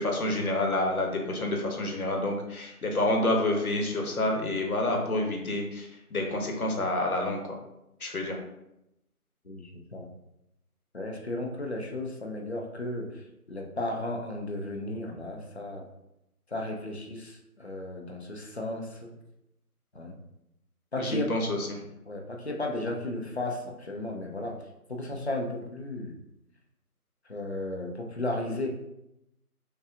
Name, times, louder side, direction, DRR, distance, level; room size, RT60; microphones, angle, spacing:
voice 1, 0.0-7.6 8.0-8.4 21.0-21.8, left 1 dB, 70° left, 1 dB, 1.0 m, -28 dB
voice 2, 9.4-10.1 10.9-15.8 16.5-19.1 19.9-20.2 20.9-21.4 22.1-24.6 24.9-26.1 27.3-28.7, left 2 dB, 45° left, 1 dB, 0.5 m, -34 dB
5.5 x 2.3 x 2.5 m, 0.87 s
figure-of-eight pair, 170°, 45 cm